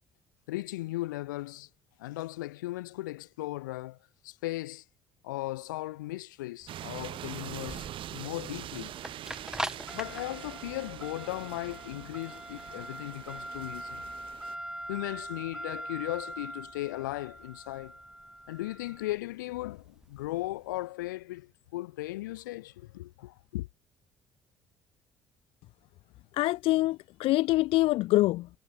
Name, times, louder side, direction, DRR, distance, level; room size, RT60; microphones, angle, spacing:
voice 1, 0.5-1.7 2.0-4.0 4.2-4.8 5.2-8.9 9.9-14.0 14.9-18.0 18.5-23.7, left 18 dB, 80° left, 1.9 m, -37 dB
sound 1, 6.6-20.7, right 1 dB, 5° right, 2.2 m, -42 dB
sound 2, 6.7-14.6, right 12 dB, 60° right, 4.7 m, -43 dB
voice 2, 26.3-28.5, left 18 dB, 65° left, 0.9 m, -25 dB
hypercardioid pair, 55°, 10 cm